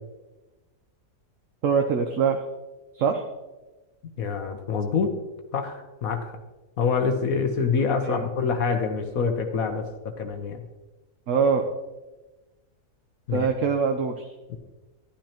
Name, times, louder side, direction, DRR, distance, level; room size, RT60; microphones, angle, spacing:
voice 1, 1.6-2.4 2.9-3.2 8.0-8.3 11.3-11.7 13.3-14.3, right 5 dB, 60° right, 4 dB, 1.0 m, -23 dB
voice 2, 4.2-5.2 5.5-6.3 6.8-10.6 13.3-13.5 14.5-14.6, left 5 dB, 65° left, 6 dB, 1.3 m, -26 dB
12.0 x 11.5 x 2.9 m, 1.1 s
omnidirectional pair, 1.7 m